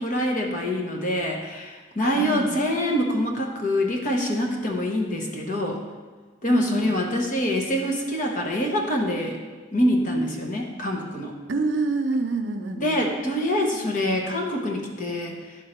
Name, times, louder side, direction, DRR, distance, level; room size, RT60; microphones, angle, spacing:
voice 1, 0.0-5.8 6.4-9.4 9.7-11.3 12.8-15.6, left 1 dB, 40° left, 1 dB, 1.0 m, -25 dB
voice 2, 2.2-2.5 6.5-6.9 11.5-13.0, right 3 dB, 65° right, 5 dB, 0.6 m, -26 dB
11.0 x 3.7 x 4.4 m, 1.4 s
head